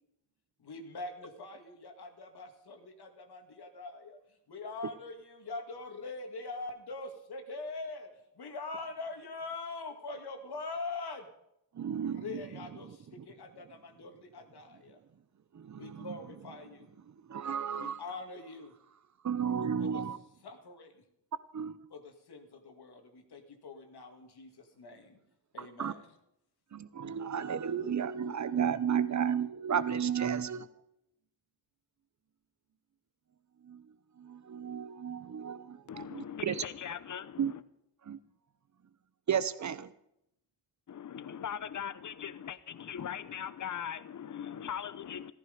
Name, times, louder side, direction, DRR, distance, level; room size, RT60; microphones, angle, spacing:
voice 1, 0.6-4.2 4.5-11.3 12.0-15.0 15.7-16.9 17.7-18.7 19.8-20.0 20.4-21.0 21.9-25.2 25.5-26.1, left 3 dB, 65° left, 5 dB, 2.2 m, -43 dB
voice 2, 11.8-12.4 15.5-16.1 17.3-18.0 19.2-20.2 21.5-21.8 25.6-25.9 26.7-30.7 33.7-33.8 34.2-36.6 37.4-37.5 38.1-38.2 39.3-39.9, right 8 dB, 45° right, 15 dB, 0.8 m, -33 dB
voice 3, 35.9-37.6 40.9-45.3, left 8 dB, 45° left, 15 dB, 0.8 m, -40 dB
14.5 x 14.5 x 5.2 m, 0.80 s
wide cardioid pair, 105°, 41 cm